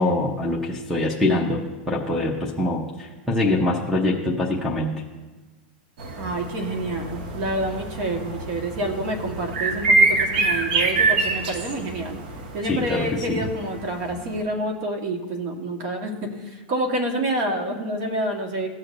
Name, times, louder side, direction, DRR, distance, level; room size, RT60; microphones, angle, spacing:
voice 1, 0.0-4.9 12.6-13.5, left 2 dB, ahead, -6 dB, 0.9 m, -24 dB
sound 1, 6.0-14.4, right 3 dB, 70° right, 1.1 m, -25 dB
voice 2, 6.2-12.2 12.5-18.8, right 1 dB, 50° right, 3 dB, 1.5 m, -28 dB
17.0 x 6.4 x 2.6 m, 1.3 s
supercardioid pair, 145°, 5 cm